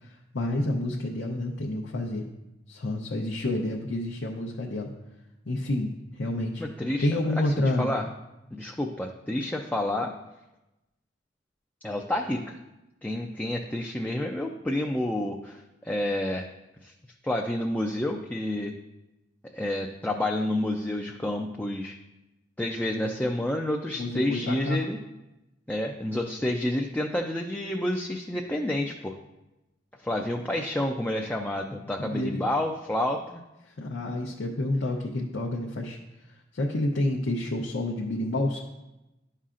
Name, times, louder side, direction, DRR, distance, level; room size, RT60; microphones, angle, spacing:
voice 1, 0.0-2.2 2.7-4.9 5.5-6.6 7.0-7.9 24.0-24.8 32.0-32.4 33.6-36.0 36.5-38.6, left 1 dB, 70° left, -1 dB, 0.7 m, -29 dB
voice 2, 6.6-7.1 7.4-8.0 8.5-10.1 11.8-12.6 13.0-16.5 16.8-16.9 17.2-18.7 19.5-21.9 22.6-25.0 25.7-29.2 30.0-33.4, left 1 dB, 10° left, 1 dB, 0.4 m, -29 dB
11.5 x 5.5 x 2.5 m, 0.98 s
head